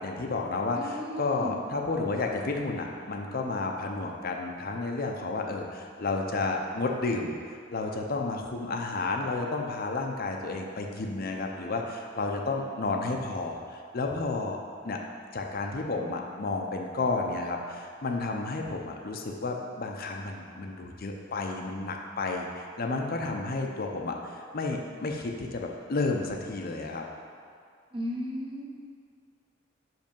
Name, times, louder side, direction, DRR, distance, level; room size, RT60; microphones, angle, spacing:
voice 1, 0.0-7.3 7.7-14.6 14.8-15.0 15.3-27.0, left 3 dB, 50° left, 2 dB, 0.6 m, -31 dB
voice 2, 0.8-1.5 27.9-28.7, equal, 25° right, -2 dB, 0.8 m, -35 dB
5.9 x 5.3 x 5.2 m, 2.2 s
head